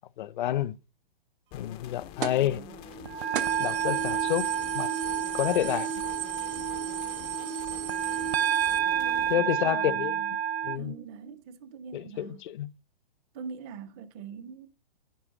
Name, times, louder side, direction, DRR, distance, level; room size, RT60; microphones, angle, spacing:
voice 1, 0.2-0.7 1.5-2.6 3.6-4.5 4.7-4.9 5.3-5.9 9.3-10.1 10.6-10.9 11.9-12.7, left 12 dB, 55° left, 0.7 m, -29 dB
sound 1, 1.5-9.3, left 11 dB, 20° left, 0.5 m, -46 dB
sound 2, 2.2-2.5 2.9-3.0 3.3-8.8, right 10 dB, 60° right, 1.2 m, -38 dB
voice 2, 2.3-2.8 8.9-10.3 10.8-12.4 13.3-14.7, right 6 dB, 25° right, 0.7 m, -43 dB
sound 3, 2.9-10.8, right 9 dB, 90° right, 0.6 m, -29 dB
10.5 x 3.8 x 7.5 m
hypercardioid pair, 145°, 30 cm